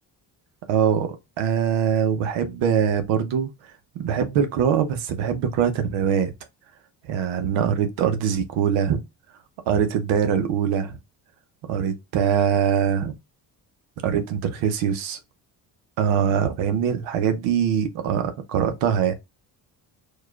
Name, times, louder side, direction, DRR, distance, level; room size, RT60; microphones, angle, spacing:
voice 1, 0.7-3.5 4.0-6.3 7.0-9.0 9.7-11.0 11.7-13.1 14.0-15.2 16.0-19.1, right 8 dB, 90° right, 0.7 m, -23 dB
4.6 x 2.3 x 2.2 m
supercardioid pair, 70°, 45 cm